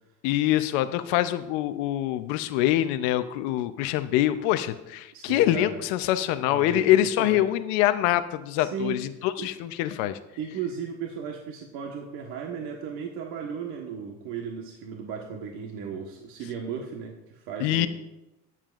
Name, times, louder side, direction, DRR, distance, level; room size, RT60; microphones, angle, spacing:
voice 1, 0.2-10.2 17.6-17.9, left 13 dB, 90° left, 11 dB, 0.8 m, -24 dB
voice 2, 5.1-5.7 6.4-6.8 7.2-7.4 8.6-9.0 9.4-9.5 10.4-17.9, right 6 dB, 75° right, 0 dB, 1.4 m, -35 dB
20.5 x 7.5 x 2.5 m, 0.95 s
cardioid pair, 115°, 36 cm